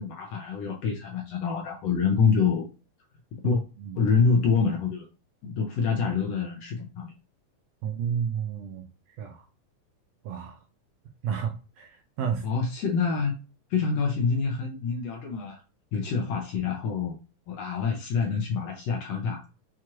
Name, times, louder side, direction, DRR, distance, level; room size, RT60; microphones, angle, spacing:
voice 1, 0.0-2.7 3.4-3.6 4.0-5.1 5.4-7.1 12.4-13.3 13.7-15.6 15.9-17.2 17.5-19.5, left 5 dB, 75° left, 1.5 m, -26 dB
voice 2, 7.8-8.9 9.2-9.4 10.2-10.6 11.2-12.4, right 7 dB, 80° right, 1.5 m, -31 dB
6.1 x 2.4 x 2.9 m
omnidirectional pair, 3.5 m